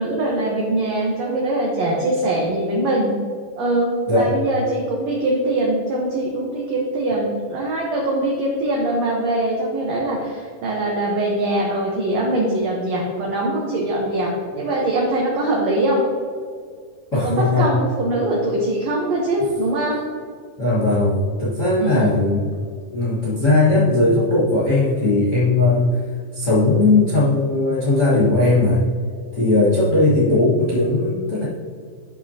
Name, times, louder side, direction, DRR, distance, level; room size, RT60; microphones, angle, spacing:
voice 1, 0.0-3.2 3.6-16.0 17.1-20.0 21.8-22.2, right 1 dB, 65° right, -2 dB, 1.8 m, -22 dB
voice 2, 17.1-17.7 20.6-22.4 22.9-25.9 26.3-28.8 29.4-31.5, left 2 dB, 90° left, -9 dB, 0.6 m, -18 dB
12.5 x 5.5 x 2.8 m, 2.1 s
omnidirectional pair, 4.2 m